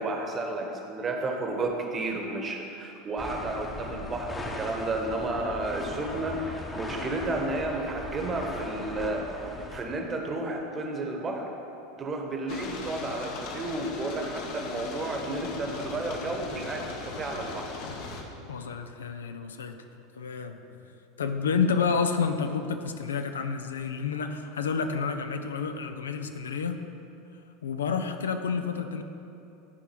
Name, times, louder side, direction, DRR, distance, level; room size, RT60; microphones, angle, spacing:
voice 1, 0.0-9.2 9.7-11.5 12.0-17.7, right 2 dB, 25° right, 2 dB, 1.2 m, -32 dB
sound 1, 3.2-9.8, left 1 dB, 15° left, 1.0 m, -38 dB
sound 2, 3.7-10.7, right 3 dB, 55° right, 1.2 m, -46 dB
sound 3, 12.5-18.2, left 4 dB, 50° left, 1.0 m, -38 dB
voice 2, 18.5-19.8 20.1-20.6 21.2-26.8 27.6-29.0, left 5 dB, 70° left, 7 dB, 0.4 m, -29 dB
12.0 x 4.6 x 4.5 m, 2.8 s
figure-of-eight pair, 80°, 0 cm